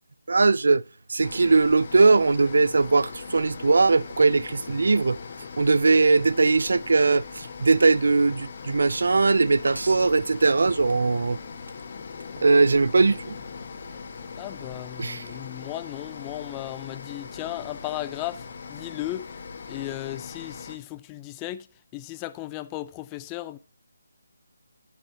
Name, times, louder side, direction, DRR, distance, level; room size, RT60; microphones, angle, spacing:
voice 1, 0.3-0.8 1.1-5.2 5.6-11.4 12.4-13.4 15.0-15.2, right 3 dB, 70° right, 0.4 m, -20 dB
sound 1, 1.2-20.8, left 5 dB, 40° left, 1.8 m, -40 dB
sound 2, 9.6-11.3 11.7-12.3 13.9-14.0, right 2 dB, 85° right, 1.2 m, -40 dB
voice 2, 14.4-19.3 19.7-21.7 21.9-23.6, left 15 dB, 15° left, 0.5 m, -35 dB
13.0 x 9.6 x 2.9 m
figure-of-eight pair, 160°, 0 cm